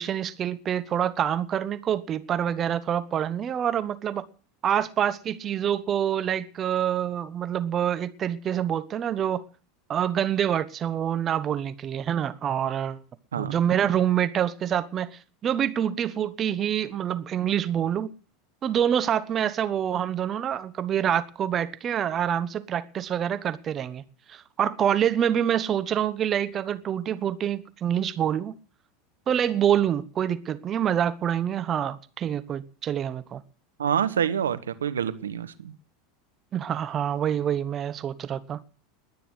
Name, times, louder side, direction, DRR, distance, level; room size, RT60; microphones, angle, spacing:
voice 1, 0.0-4.3 4.6-9.4 9.9-13.0 13.4-18.1 18.6-24.0 24.3-28.6 29.3-33.4 36.5-38.6, right 9 dB, 35° right, 1.0 m, -26 dB
voice 2, 33.8-35.7, right 8 dB, 80° right, 1.2 m, -27 dB
20.5 x 9.3 x 6.3 m
hypercardioid pair, 85°, 0 cm